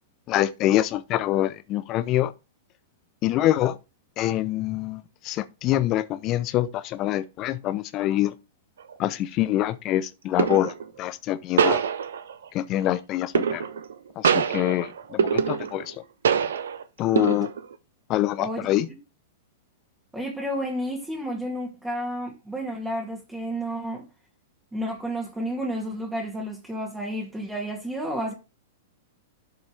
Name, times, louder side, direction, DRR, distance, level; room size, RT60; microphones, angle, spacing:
voice 1, 0.3-2.3 3.2-3.8 4.2-8.3 9.0-11.8 12.5-13.6 14.2-15.9 17.0-17.5 18.1-18.9, left 14 dB, 35° left, 0.8 m, -25 dB
sound 1, 8.8-9.1 10.4-10.9 11.6-12.5 13.3-13.9 14.2-15.9 16.2-16.8 17.2-17.7, right 7 dB, 65° right, 0.8 m, -24 dB
voice 2, 20.1-24.1 24.7-28.3, equal, 5° right, 2.6 m, -31 dB
12.0 x 5.4 x 3.4 m
figure-of-eight pair, 100°, 0 cm